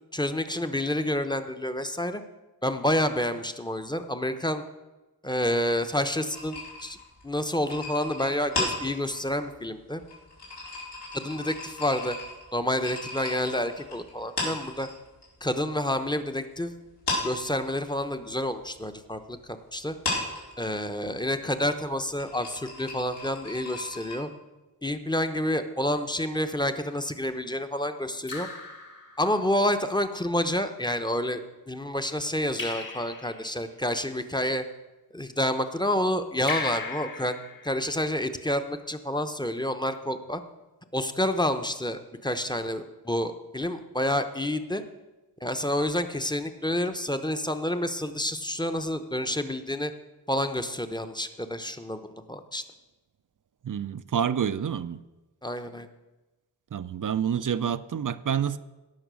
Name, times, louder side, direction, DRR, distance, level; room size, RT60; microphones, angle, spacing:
voice 1, 0.1-2.2 2.6-4.6 5.2-7.0 7.2-10.0 11.1-12.2 12.5-14.9 15.4-16.7 17.2-19.9 20.6-24.3 24.8-28.5 29.2-34.6 35.1-37.4 37.6-40.4 40.9-44.8 45.4-49.9 50.3-52.6 55.4-55.9, left 1 dB, 10° left, 0.8 m, -29 dB
sound 1, 6.3-15.3 15.6-16.6 16.9-24.2, left 2 dB, 85° left, 4.5 m, -36 dB
Raindrop / Drip, 26.5-26.9 28.3-29.6 32.5-33.7 36.5-38.2, left 4 dB, 55° left, 2.3 m, -37 dB
voice 2, 53.6-55.0 56.7-58.6, right 8 dB, 50° right, 0.5 m, -28 dB
17.0 x 6.1 x 6.2 m
wide cardioid pair, 85°, 40 cm